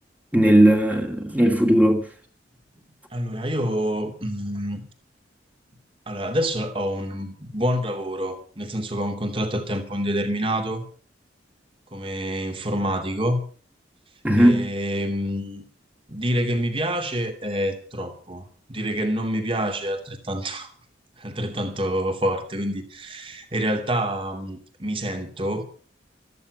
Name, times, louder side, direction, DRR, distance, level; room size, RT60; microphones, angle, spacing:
voice 1, 0.3-2.0 14.2-14.7, right 1 dB, 10° right, 2.3 m, -17 dB
voice 2, 3.1-4.8 6.1-10.8 11.9-13.4 14.4-15.6 16.1-20.7 21.2-25.7, equal, 30° right, 2.9 m, -27 dB
14.0 x 14.0 x 6.8 m
head